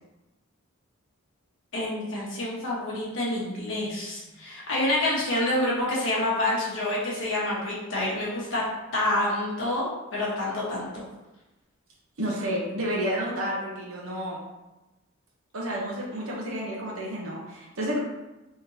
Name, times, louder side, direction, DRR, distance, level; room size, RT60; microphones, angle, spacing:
voice 1, 1.7-8.6 8.9-9.8 10.1-11.0, left 1 dB, 65° left, -5 dB, 1.3 m, -27 dB
voice 2, 12.2-14.4 15.5-18.0, equal, 85° right, -4 dB, 0.9 m, -30 dB
3.7 x 3.6 x 2.7 m, 1.0 s
head